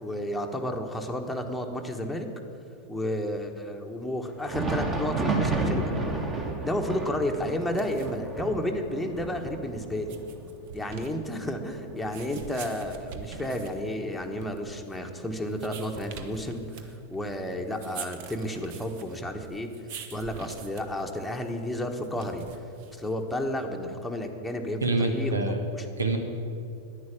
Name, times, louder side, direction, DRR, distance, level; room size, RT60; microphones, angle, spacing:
voice 1, 0.0-2.3 2.9-6.0 6.6-10.2 10.7-19.7 20.1-22.5 23.0-25.9, left 1 dB, 5° left, 1 dB, 1.3 m, -32 dB
Thunder, 4.3-13.8 14.1-14.3 15.0-15.1 16.1-16.2, right 3 dB, 20° right, 1.8 m, -33 dB
sound 1, 7.5-23.4, right 6 dB, 50° right, 1.1 m, -46 dB
voice 2, 24.8-25.6 26.0-26.2, right 2 dB, 75° right, 5 dB, 1.3 m, -26 dB
11.0 x 9.8 x 8.6 m, 2.6 s
figure-of-eight pair, 90°, 0 cm